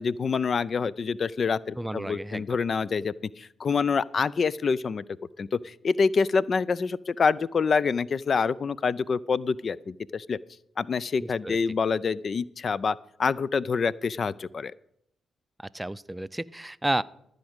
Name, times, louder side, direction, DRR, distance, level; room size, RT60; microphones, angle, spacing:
voice 1, 0.0-5.0 5.4-10.4 10.8-14.7, left 5 dB, 50° left, 20 dB, 0.4 m, -26 dB
voice 2, 1.8-2.4 11.2-11.6 15.6-17.0, right 1 dB, 10° right, 18 dB, 0.5 m, -31 dB
14.0 x 5.1 x 7.9 m, 0.74 s
supercardioid pair, 50°, 0 cm